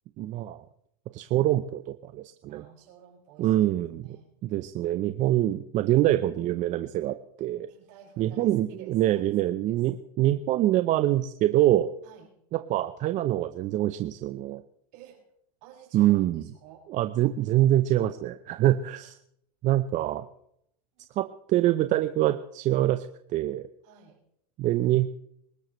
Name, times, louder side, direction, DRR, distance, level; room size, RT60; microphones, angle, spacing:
voice 1, 0.2-0.6 1.1-2.6 3.4-4.2 4.4-7.7 8.2-11.9 12.5-14.6 15.9-16.4 16.9-19.1 19.6-20.2 21.2-23.1 23.3-23.7 24.6-25.1, right 14 dB, 40° right, 10 dB, 0.8 m, -25 dB
voice 2, 2.5-3.6 4.0-4.3 7.7-9.3 9.7-9.8 12.0-12.3 14.9-15.2 15.6-16.9 20.0-20.1 21.0-21.3 23.8-24.2, right 9 dB, 55° right, 0 dB, 6.6 m, -52 dB
24.0 x 13.5 x 3.2 m, 0.72 s
hypercardioid pair, 110°, 20 cm